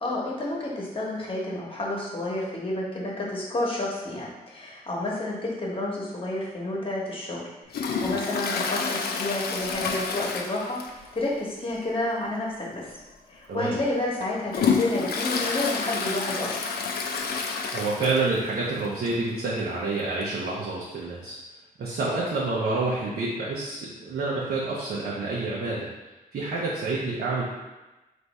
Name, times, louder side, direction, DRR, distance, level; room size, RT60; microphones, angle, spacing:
voice 1, 0.0-12.9 13.3-16.6, left 2 dB, 35° left, -4 dB, 1.1 m, -30 dB
Toilet flush, 7.7-11.2 11.4-11.5 12.0-12.1 12.9-13.0 13.6-18.5 18.8-18.9 19.1-19.2 20.2-20.3, left 5 dB, 80° left, 0.4 m, -29 dB
voice 2, 17.7-21.4 21.8-25.9 26.3-27.4, right 3 dB, 75° right, -5 dB, 0.7 m, -28 dB
3.4 x 2.6 x 4.1 m, 1.1 s
cardioid pair, 85°, 16 cm